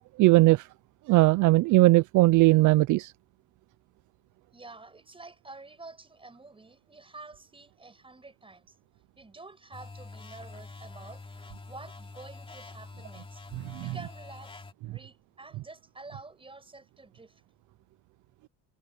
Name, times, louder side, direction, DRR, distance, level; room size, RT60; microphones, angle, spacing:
voice 1, 0.2-0.7 1.1-3.1 13.7-13.8, right 20 dB, 60° right, 0.5 m, -19 dB
voice 2, 4.5-8.7 9.2-11.2 11.7-13.4 13.8-17.4, right 3 dB, 15° right, 7.0 m, -48 dB
sound 1, 9.7-14.7, left 3 dB, 15° left, 3.2 m, -46 dB
cardioid pair, 125°, 35 cm